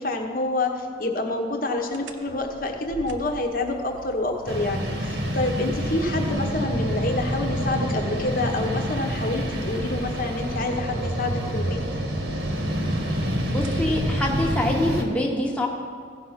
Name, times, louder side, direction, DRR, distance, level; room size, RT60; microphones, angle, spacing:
voice 1, 0.0-11.8, left 2 dB, 45° left, 3 dB, 1.1 m, -27 dB
sound 1, 1.9-14.8, right 2 dB, 80° right, 0.7 m, -41 dB
sound 2, 4.5-15.0, equal, 60° right, 1.3 m, -27 dB
voice 2, 13.5-15.7, left 1 dB, 5° left, -1 dB, 1.1 m, -25 dB
15.5 x 5.4 x 5.7 m, 2.2 s
head